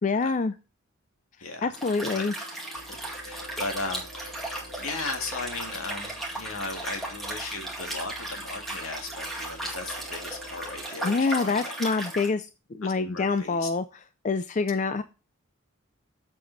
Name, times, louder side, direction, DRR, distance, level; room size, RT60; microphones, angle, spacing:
voice 1, 0.0-0.5 1.6-2.3 11.0-13.8 14.2-15.0, left 4 dB, 35° left, 0.4 m, -26 dB
Liquid, 1.7-12.3, right 1 dB, ahead, 2.1 m, -36 dB
sound 1, 2.7-10.9, right 1 dB, 60° right, 2.7 m, -49 dB
voice 2, 3.2-11.6 12.8-13.7 15.0-15.1, left 3 dB, 80° left, 1.9 m, -37 dB
7.7 x 7.0 x 4.0 m
head